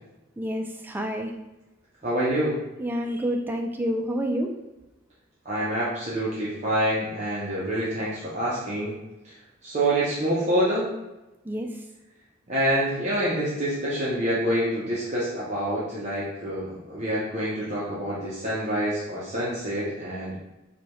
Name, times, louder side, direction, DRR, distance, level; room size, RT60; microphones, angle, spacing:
voice 1, 0.4-1.3 2.8-4.5 11.4-11.8, equal, 10° right, 2 dB, 0.3 m, -28 dB
voice 2, 2.0-2.6 5.4-8.9 9.6-10.9 12.5-20.3, right 1 dB, 35° right, -8 dB, 0.7 m, -26 dB
4.8 x 2.3 x 3.0 m, 0.99 s
head